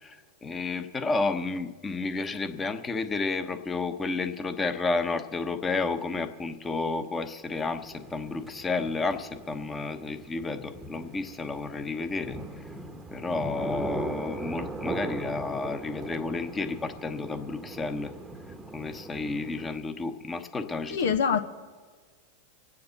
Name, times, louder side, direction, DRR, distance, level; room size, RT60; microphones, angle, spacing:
voice 1, 0.0-12.4 13.1-18.1 18.7-21.2, left 3 dB, 20° left, 8 dB, 1.1 m, -31 dB
sound 1, 7.5-19.8, right 2 dB, 15° right, 1.0 m, -39 dB
voice 2, 20.9-21.4, left 7 dB, 80° left, 9 dB, 1.0 m, -24 dB
27.0 x 9.5 x 4.0 m, 1.5 s
hypercardioid pair, 110°, 0 cm